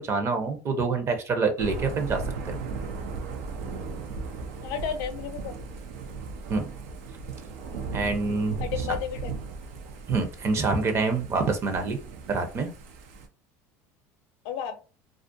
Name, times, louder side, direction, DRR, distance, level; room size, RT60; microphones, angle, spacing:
voice 1, 0.0-2.6 6.5-6.7 7.9-8.6 8.9-9.0 10.1-12.0 12.3-12.7, right 4 dB, 35° right, 6 dB, 0.7 m, -26 dB
Thunder / Rain, 1.6-13.3, right 4 dB, 90° right, 0.5 m, -37 dB
voice 2, 4.6-5.7 8.6-9.3 14.4-14.8, left 8 dB, 75° left, 8 dB, 0.5 m, -32 dB
2.4 x 2.1 x 2.6 m, 0.34 s
supercardioid pair, 115°, 7 cm